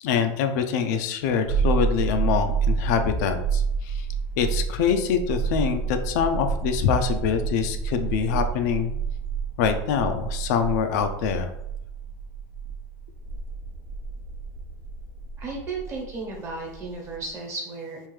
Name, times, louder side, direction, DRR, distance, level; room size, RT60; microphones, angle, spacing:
voice 1, 0.0-4.1 4.4-8.9 9.6-11.5, left 7 dB, 70° left, 7 dB, 0.4 m, -25 dB
sound 1, 1.4-17.3, right 6 dB, 65° right, 0.8 m, -29 dB
voice 2, 15.4-18.1, right 3 dB, 30° right, -1 dB, 1.1 m, -34 dB
3.6 x 2.6 x 3.2 m, 0.84 s
supercardioid pair, 135°, 9 cm